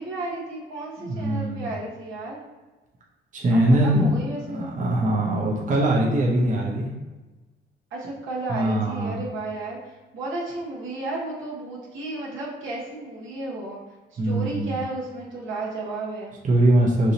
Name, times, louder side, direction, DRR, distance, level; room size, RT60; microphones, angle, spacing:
voice 1, 0.0-2.5 3.5-4.8 7.9-13.8 14.1-16.3, right 2 dB, 80° right, -5 dB, 1.3 m, -33 dB
voice 2, 1.0-1.6 3.3-4.1 4.5-6.9 8.5-9.2 14.2-14.7 16.4-17.1, right 1 dB, 40° right, -3 dB, 0.8 m, -22 dB
4.7 x 2.8 x 2.7 m, 1.2 s
cardioid pair, 90°, 20 cm